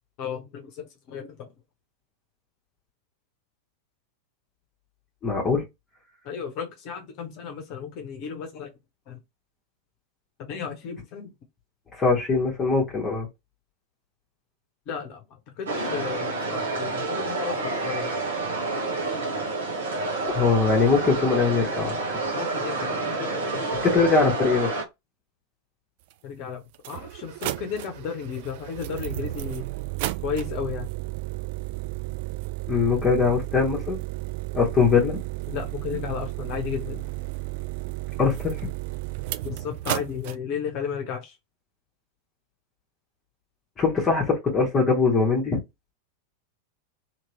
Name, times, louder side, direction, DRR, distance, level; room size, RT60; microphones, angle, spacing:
voice 1, 0.2-1.5 6.2-8.7 9.1-9.2 10.4-11.3 14.9-18.1 22.3-23.9 26.2-29.7 30.2-30.9 35.5-37.0 39.4-41.4, left 7 dB, 40° left, 0.8 m, -34 dB
voice 2, 5.2-5.6 11.9-13.3 20.2-22.2 23.8-24.7 32.7-34.0 34.5-35.2 38.2-38.7 43.8-45.6, left 4 dB, 20° left, 1.0 m, -22 dB
sound 1, 15.7-24.8, right 3 dB, 70° right, 1.1 m, -29 dB
sound 2, 26.1-26.2 26.7-40.4, right 18 dB, 50° right, 0.3 m, -33 dB
2.9 x 2.9 x 3.0 m
figure-of-eight pair, 90°, 0 cm